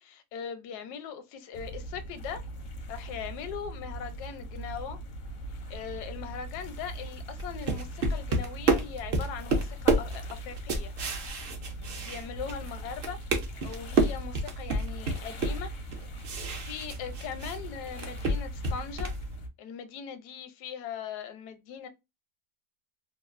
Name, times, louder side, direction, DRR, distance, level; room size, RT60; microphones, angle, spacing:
voice 1, 0.0-2.4 2.9-5.0 5.7-10.9 12.0-13.2 13.6-15.7 16.7-19.1 19.6-21.9, left 7 dB, 80° left, 1.1 m, -40 dB
sound 1, 1.5-19.5, right 1 dB, 60° left, 0.6 m, -41 dB
sound 2, 7.4-12.7 13.0-17.6 17.9-19.2, right 2 dB, 60° right, 0.6 m, -29 dB
3.0 x 2.2 x 2.4 m
omnidirectional pair, 1.7 m